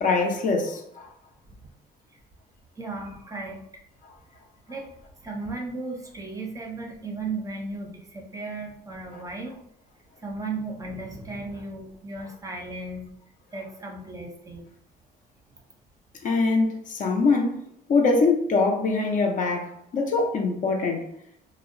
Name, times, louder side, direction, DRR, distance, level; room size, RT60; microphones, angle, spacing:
voice 1, 0.0-1.1 9.1-9.2 16.2-17.6 17.9-21.0, left 3 dB, 50° left, 0.5 m, -23 dB
voice 2, 2.8-3.6 4.7-4.9 5.2-9.6 10.2-13.1 13.5-14.7, right 3 dB, 20° right, 0.5 m, -35 dB
2.7 x 2.0 x 2.5 m
cardioid pair, 110°, 17 cm